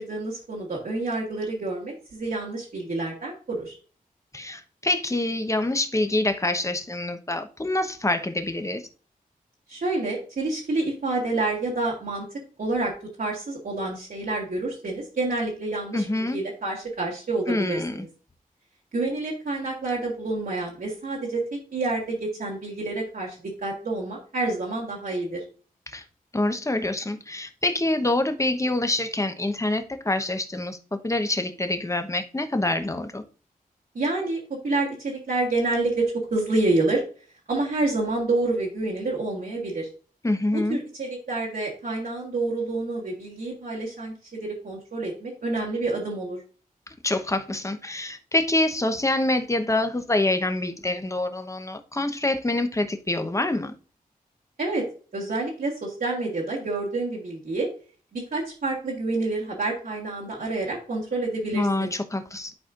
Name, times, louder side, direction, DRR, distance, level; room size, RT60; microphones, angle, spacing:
voice 1, 0.0-3.8 9.7-12.2 12.6-12.9 13.2-18.1 18.9-21.4 21.7-25.4 34.0-37.0 37.5-39.9 40.7-46.4 54.6-54.9 55.1-57.7 58.1-61.9, right 2 dB, 70° right, 1.8 m, -28 dB
voice 2, 4.3-8.8 15.9-16.4 17.5-18.0 25.9-26.0 26.3-33.2 40.2-40.8 47.0-53.7 61.5-62.5, left 2 dB, 20° left, 1.0 m, -26 dB
11.5 x 4.3 x 2.5 m
cardioid pair, 55°, 15 cm